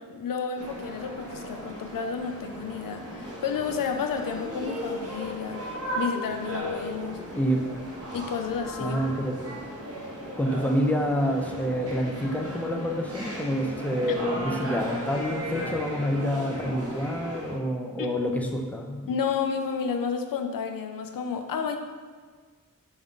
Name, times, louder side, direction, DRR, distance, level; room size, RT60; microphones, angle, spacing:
voice 1, 0.0-5.6 6.0-7.2 8.1-9.0 18.0-18.1 19.1-21.8, left 6 dB, 75° left, 6 dB, 0.5 m, -31 dB
sound 1, 0.6-17.6, equal, 45° right, 0.9 m, -36 dB
voice 2, 8.8-9.3 10.4-19.0, equal, 5° left, 1 dB, 0.4 m, -27 dB
5.2 x 2.3 x 3.6 m, 1.5 s
wide cardioid pair, 70°, 33 cm